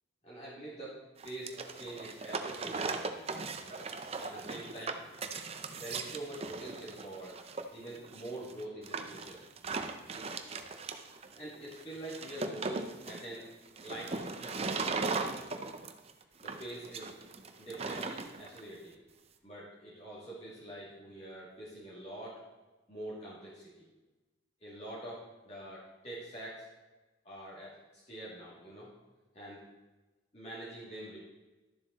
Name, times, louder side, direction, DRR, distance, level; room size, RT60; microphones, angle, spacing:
voice 1, 0.2-3.3 3.6-3.9 4.2-5.0 5.7-7.4 7.7-9.4 11.3-13.5 13.8-15.1 16.4-17.1 17.6-19.0 19.4-22.4 22.9-23.9 24.6-26.7 27.2-28.9 29.3-29.6 30.3-31.2, right 1 dB, 35° left, -9 dB, 2.5 m, -45 dB
sound 1, 1.2-18.6, right 4 dB, 30° right, 0.6 m, -38 dB
12.0 x 7.2 x 4.1 m, 1.1 s
head